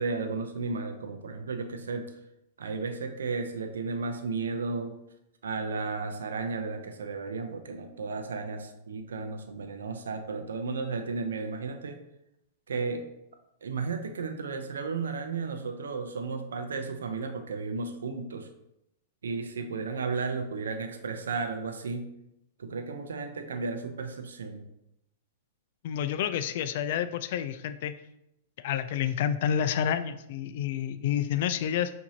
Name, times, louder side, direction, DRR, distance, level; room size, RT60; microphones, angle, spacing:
voice 1, 0.0-2.2 2.6-5.0 5.4-12.0 12.7-13.1 13.6-18.5 19.2-22.2 22.6-24.7, right 4 dB, 90° right, 6 dB, 0.5 m, -34 dB
voice 2, 25.8-27.9 28.6-31.9, left 9 dB, 60° left, 11 dB, 0.3 m, -29 dB
5.6 x 2.7 x 2.7 m, 0.84 s
hypercardioid pair, 125°, 0 cm